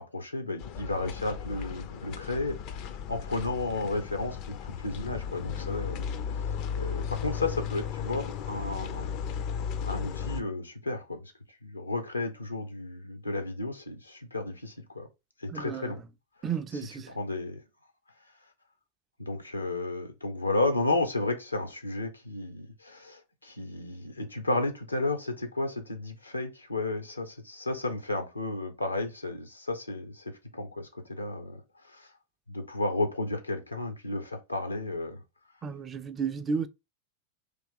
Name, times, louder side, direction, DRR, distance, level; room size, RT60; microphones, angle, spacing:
voice 1, 0.0-9.1 9.8-11.3 11.6-15.1 15.4-16.0 17.1-17.6 19.2-31.6 31.9-32.1 32.5-35.2, left 2 dB, 85° left, 0.7 m, -33 dB
sound 1, 0.6-10.4, left 7 dB, 40° left, 0.4 m, -35 dB
voice 2, 15.5-15.9 16.4-17.2 35.6-36.7, right 6 dB, 25° right, 0.4 m, -33 dB
3.3 x 2.8 x 3.6 m
figure-of-eight pair, 90°, 0 cm